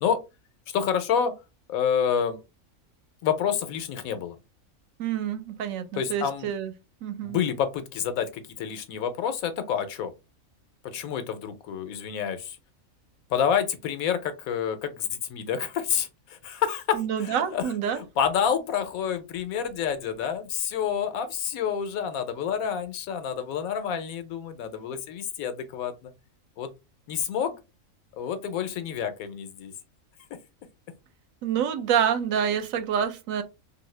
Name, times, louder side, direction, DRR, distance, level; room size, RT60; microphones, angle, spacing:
voice 1, 0.7-1.3 1.7-2.4 3.2-4.4 5.9-6.5 7.2-10.1 10.8-12.6 13.3-26.1 26.6-26.7 27.1-27.6 28.2-29.7, left 8 dB, 90° left, 1.1 m, -28 dB
voice 2, 5.0-6.7 7.0-7.4 16.9-18.0 31.4-33.4, right 8 dB, 80° right, 1.0 m, -27 dB
2.7 x 2.6 x 3.1 m
omnidirectional pair, 1.4 m